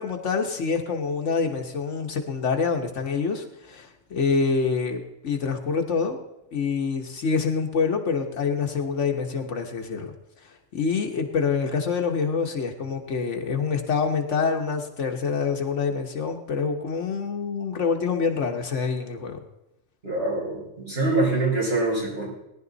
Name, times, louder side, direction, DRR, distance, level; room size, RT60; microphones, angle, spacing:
voice 1, 0.0-6.2 6.5-10.1 10.7-19.4, left 5 dB, 70° left, 3 dB, 1.6 m, -26 dB
voice 2, 20.0-22.3, right 2 dB, 50° right, -6 dB, 5.3 m, -24 dB
18.5 x 10.5 x 4.0 m, 0.90 s
omnidirectional pair, 1.3 m